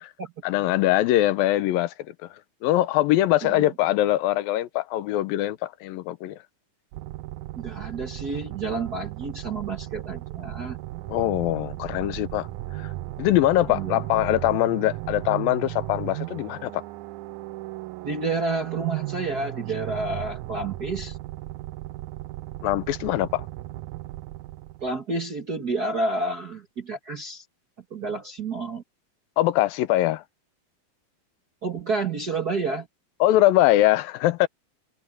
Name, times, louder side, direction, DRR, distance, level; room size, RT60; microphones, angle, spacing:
voice 1, 0.4-6.4 11.1-12.9 13.2-16.8 22.6-23.5 29.4-30.2 33.2-34.5, left 15 dB, 85° left, 2.6 m, -23 dB
sound 1, 6.9-25.0, right 17 dB, 85° right, 1.7 m, -36 dB
voice 2, 7.6-10.8 13.7-14.0 18.0-21.2 24.8-27.4 27.9-28.8 31.6-32.9, right 3 dB, 40° right, 1.4 m, -30 dB
omnidirectional pair, 4.0 m